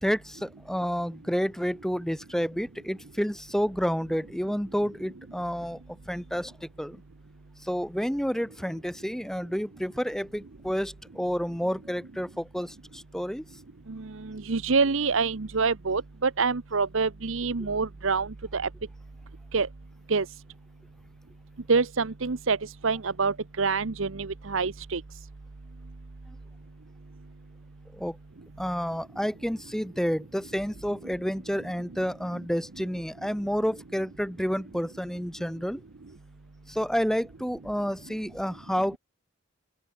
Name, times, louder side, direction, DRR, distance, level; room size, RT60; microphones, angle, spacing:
voice 1, 0.0-5.8 6.1-7.0 7.6-13.4 27.9-28.2 28.6-35.8 36.7-39.0, equal, ahead, 2.4 m, -30 dB
voice 2, 13.9-18.7 19.5-19.7 20.1-20.3 21.7-25.0, right 4 dB, 65° right, 0.9 m, -26 dB
open air
head